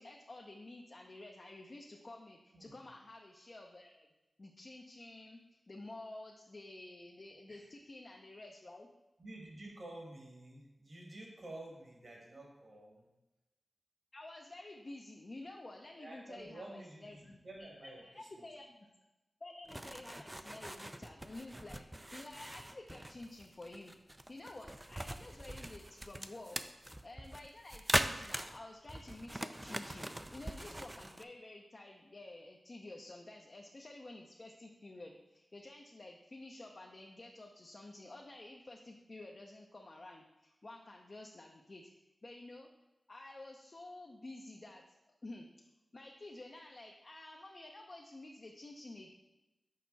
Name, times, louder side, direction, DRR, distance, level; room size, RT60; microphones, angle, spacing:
voice 1, 0.0-4.1 4.4-5.4 5.7-8.9 14.1-18.9 19.4-23.9 24.3-26.6 27.0-41.9 42.2-42.7 43.1-44.8 45.2-45.5 45.9-49.1, left 2 dB, 50° left, 0 dB, 0.7 m, -51 dB
voice 2, 9.2-13.1 16.0-18.5, right 1 dB, 60° right, -1 dB, 2.1 m, -50 dB
sound 1, 19.7-31.2, right 1 dB, 15° right, 0.4 m, -41 dB
6.6 x 4.6 x 4.0 m, 1.0 s
cardioid pair, 45°, 0 cm